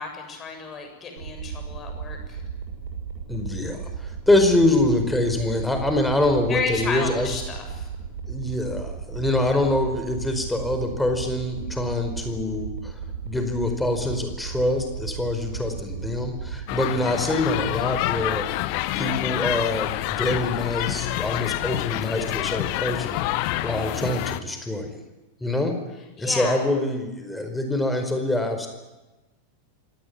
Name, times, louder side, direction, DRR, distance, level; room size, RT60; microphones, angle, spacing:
voice 1, 0.0-2.4 6.5-7.9 26.2-26.6, left 5 dB, 25° left, 4 dB, 7.2 m, -32 dB
sound 1, 1.2-16.6, right 6 dB, 65° right, 7.0 m, -35 dB
voice 2, 3.3-7.3 8.3-13.0 13.2-18.5 19.0-23.2 23.6-25.0 25.4-25.8 26.2-28.7, left 1 dB, 5° left, 5 dB, 4.8 m, -25 dB
sound 2, 16.7-24.4, left 16 dB, 45° left, 1.3 m, -27 dB
25.5 x 18.5 x 9.9 m, 1.1 s
figure-of-eight pair, 90°, 0 cm